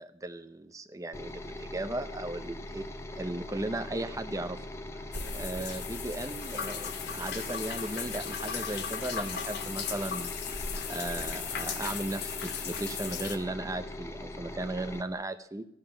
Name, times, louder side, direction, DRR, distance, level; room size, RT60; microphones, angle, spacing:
voice 1, 0.0-2.9 3.1-4.6 4.9-10.3 10.9-15.7, right 2 dB, 15° right, 9 dB, 0.6 m, -36 dB
sound 1, 1.1-15.0, left 1 dB, 15° left, 0.9 m, -41 dB
sound 2, 5.1-13.4, left 6 dB, 55° left, 1.4 m, -37 dB
14.0 x 5.7 x 8.9 m, 0.71 s
head